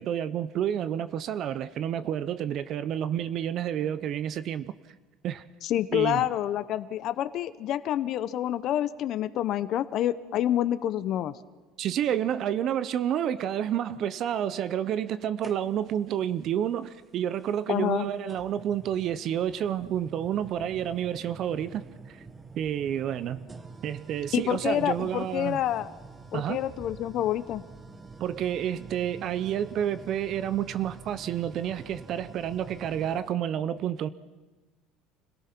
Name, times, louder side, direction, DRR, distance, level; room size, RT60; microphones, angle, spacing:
voice 1, 0.0-4.7 5.2-5.5 5.9-6.3 11.8-22.2 22.6-23.4 23.8-25.6 26.3-26.6 28.2-34.1, right 10 dB, 45° right, 0.6 m, -29 dB
voice 2, 5.6-11.3 17.7-18.1 24.3-25.9 26.3-27.6, left 11 dB, 50° left, 0.6 m, -28 dB
sound 1, 15.4-16.1 17.4-17.5 18.3-33.3, right 4 dB, 20° right, 1.1 m, -47 dB
26.0 x 17.5 x 5.9 m
cardioid pair, 140°, 0 cm